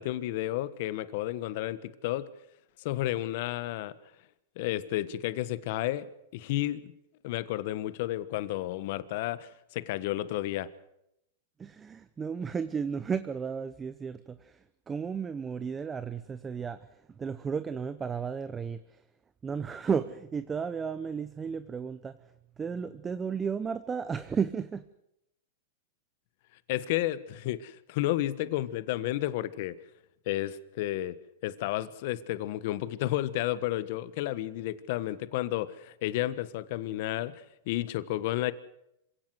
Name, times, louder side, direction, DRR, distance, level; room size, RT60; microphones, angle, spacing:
voice 1, 0.0-2.3 2.8-3.9 4.5-6.9 7.2-10.7 26.7-29.8 30.2-38.5, left 15 dB, 55° left, 15 dB, 1.3 m, -32 dB
voice 2, 11.6-14.4 14.9-16.8 17.2-18.8 19.4-22.1 22.6-24.8, right 6 dB, 15° right, 13 dB, 0.8 m, -33 dB
27.0 x 17.0 x 7.9 m, 0.84 s
supercardioid pair, 140°, 0 cm